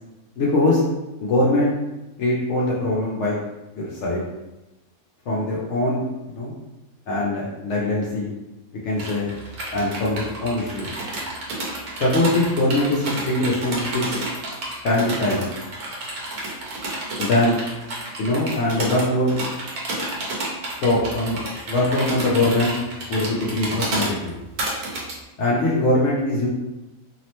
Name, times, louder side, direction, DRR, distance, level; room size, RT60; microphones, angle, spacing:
voice 1, 0.4-0.8 1.2-1.7 2.2-3.4 3.8-4.2 5.3-6.0 6.3-6.5 7.1-8.3 8.8-9.3 9.7-10.9 12.0-14.2 14.8-15.5 17.2-17.6 18.2-19.4 20.8-21.4 21.7-22.7 23.1-24.4 25.4-26.5, left 1 dB, 65° left, -5 dB, 0.7 m, -22 dB
sound 1, 9.0-25.1, right 2 dB, 80° right, 1.2 m, -30 dB
2.8 x 2.1 x 2.9 m, 1.0 s
omnidirectional pair, 1.6 m